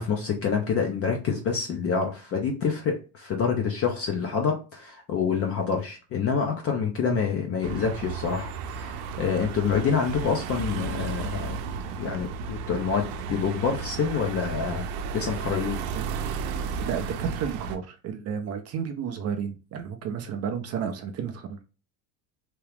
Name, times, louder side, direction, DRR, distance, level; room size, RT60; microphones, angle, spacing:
voice 1, 0.0-11.6 11.9-14.8 15.1-15.8, left 6 dB, 30° left, 0.5 m, -27 dB
sound 1, 7.6-17.8, right 5 dB, 85° right, 0.7 m, -33 dB
voice 2, 16.8-21.6, right 7 dB, 35° right, 0.4 m, -32 dB
2.9 x 2.3 x 3.3 m
cardioid pair, 140°, 49 cm